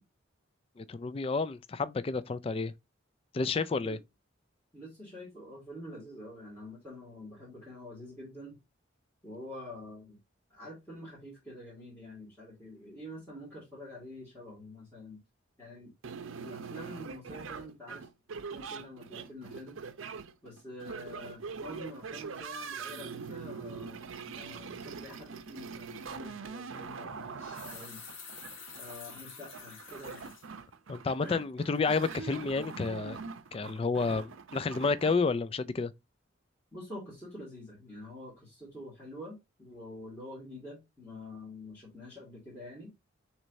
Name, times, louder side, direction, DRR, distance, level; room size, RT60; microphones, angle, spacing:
voice 1, 0.8-2.7 3.3-4.0 30.9-33.2 33.5-35.9, left 4 dB, 30° left, 0.3 m, -30 dB
voice 2, 4.7-8.6 9.2-10.2 10.5-15.2 15.6-15.9 16.4-18.1 18.5-19.8 20.4-28.0 28.7-30.3 31.2-31.4 36.7-42.9, left 1 dB, 10° left, 2.4 m, -47 dB
sound 1, 16.0-35.1, right 5 dB, 80° right, 0.6 m, -43 dB
sound 2, 26.0-26.2 27.2-30.5 30.9-31.0 31.6-32.3, left 5 dB, 80° left, 1.5 m, -48 dB
6.2 x 3.1 x 2.6 m
head